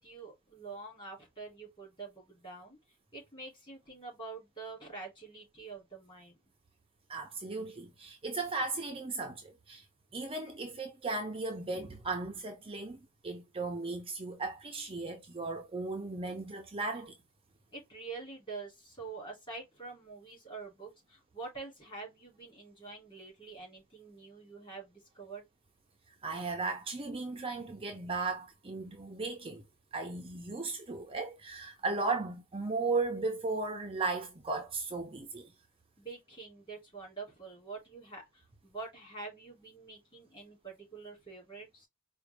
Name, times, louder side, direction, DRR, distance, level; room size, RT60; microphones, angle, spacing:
voice 1, 0.0-2.8 3.1-6.4 17.7-25.4 36.0-41.9, right 4 dB, 25° left, 2.9 m, -46 dB
voice 2, 7.1-9.8 10.1-17.1 26.2-29.6 29.9-35.5, right 3 dB, 25° right, 0.6 m, -36 dB
4.9 x 2.5 x 3.4 m
head